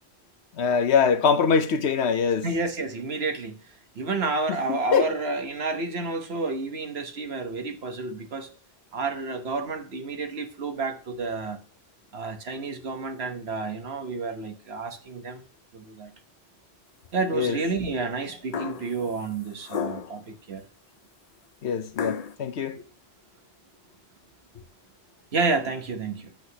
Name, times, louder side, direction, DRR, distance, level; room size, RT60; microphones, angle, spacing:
voice 1, 0.6-2.5 4.5-5.1 17.3-17.6 21.6-22.8, left 6 dB, 80° left, 1.1 m, -23 dB
voice 2, 2.4-3.6 3.9-8.5 8.9-11.6 12.1-15.4 15.7-16.1 17.1-20.6 25.3-26.3, right 3 dB, 70° right, 1.4 m, -30 dB
sound 1, 18.5-19.0 19.6-20.2 22.0-22.3, left 7 dB, 50° left, 0.5 m, -31 dB
8.8 x 7.9 x 2.9 m
omnidirectional pair, 1.1 m